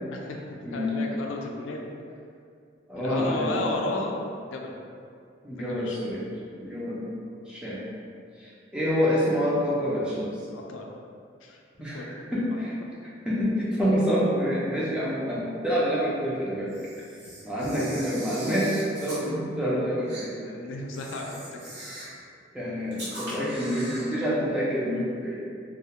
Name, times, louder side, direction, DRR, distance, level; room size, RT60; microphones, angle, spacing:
voice 1, 0.1-1.9 3.0-4.2 4.5-4.8 5.5-6.0 10.5-10.9 11.4-11.6 11.9-12.6 16.5-16.6 20.4-21.6 23.4-23.6, left 2 dB, 85° left, 1 dB, 0.3 m, -34 dB
voice 2, 2.9-3.5 5.4-6.2 6.6-7.1 7.5-7.8 8.4-10.3 11.8-12.1 12.3-12.7 13.3-16.7 17.4-20.3 22.5-25.3, equal, 5° right, -8 dB, 0.4 m, -27 dB
Camera, 16.7-19.2 20.1-20.3 20.9-22.2 22.9-24.1, right 1 dB, 60° right, 1.0 m, -41 dB
2.3 x 2.1 x 2.7 m, 2.4 s
head